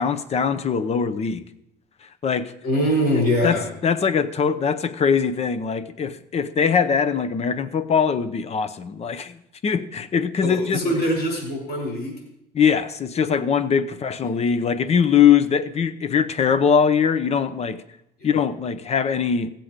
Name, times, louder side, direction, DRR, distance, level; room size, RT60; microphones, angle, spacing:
voice 1, 0.0-1.5 2.2-2.5 3.4-9.4 9.6-10.8 12.5-17.8 18.2-19.5, left 7 dB, 40° left, 13 dB, 0.7 m, -21 dB
voice 2, 2.6-3.7 10.4-12.2 18.2-18.3, equal, 70° left, 0 dB, 5.3 m, -23 dB
16.0 x 7.6 x 5.1 m, 0.82 s
cardioid pair, 110°, 17 cm